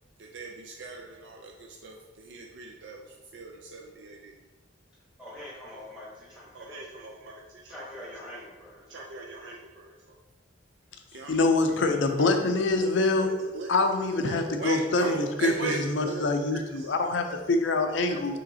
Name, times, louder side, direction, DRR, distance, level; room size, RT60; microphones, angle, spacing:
voice 1, 0.3-3.0 3.3-4.3 6.5-7.8 8.9-10.2 11.1-12.4 12.7-16.9 17.2-17.4 17.8-18.4, right 3 dB, 65° right, 0 dB, 0.4 m, -39 dB
voice 2, 5.2-6.8 7.7-9.1, left 1 dB, 5° right, -6 dB, 1.1 m, -44 dB
voice 3, 11.3-13.3 13.7-18.4, left 3 dB, 75° left, 6 dB, 0.5 m, -25 dB
5.6 x 3.1 x 2.7 m, 1.2 s
head